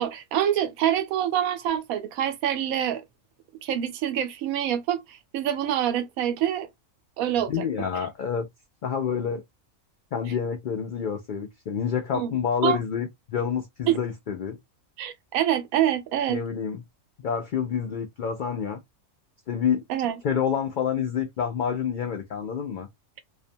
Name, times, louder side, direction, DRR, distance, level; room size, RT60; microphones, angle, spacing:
voice 1, 0.0-3.0 3.6-6.7 7.2-7.7 12.1-12.3 12.6-12.8 13.9-14.0 15.0-16.4 19.9-20.2, right 10 dB, 90° right, 1.0 m, -26 dB
voice 2, 7.5-8.5 8.8-9.4 10.1-14.6 16.3-16.8 17.2-18.8 19.5-19.8 20.2-22.9, left 7 dB, 90° left, 0.4 m, -28 dB
2.5 x 2.2 x 2.6 m
omnidirectional pair, 1.4 m